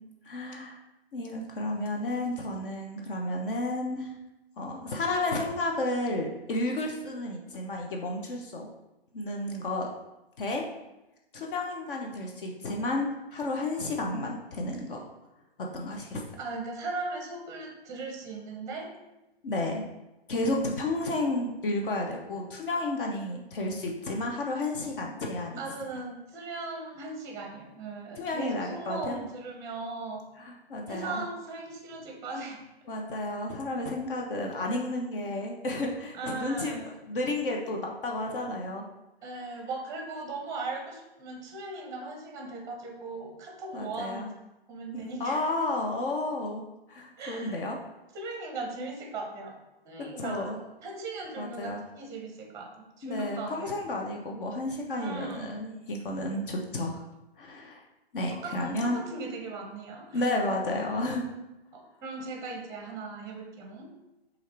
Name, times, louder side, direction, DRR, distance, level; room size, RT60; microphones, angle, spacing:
voice 1, 0.2-0.8 1.1-4.1 4.6-8.7 9.1-9.9 10.4-10.7 11.3-15.0 15.6-16.2 19.4-19.8 20.3-25.6 28.2-29.2 30.4-31.2 32.9-36.8 37.1-38.8 43.7-44.3 44.9-46.6 46.9-47.8 50.0-50.6 51.4-51.8 53.0-57.0 57.4-57.8 58.1-59.0 60.1-61.3, left 2 dB, 55° left, 1 dB, 0.7 m, -32 dB
voice 2, 16.4-18.9 25.6-30.2 30.9-32.6 36.1-37.0 39.2-44.3 44.7-45.4 47.2-47.6 48.1-49.5 49.8-50.5 50.8-53.7 55.0-55.6 58.4-60.3 61.7-63.9, right 3 dB, 10° right, 1 dB, 0.7 m, -38 dB
6.2 x 2.5 x 3.2 m, 0.98 s
hypercardioid pair, 135°, 32 cm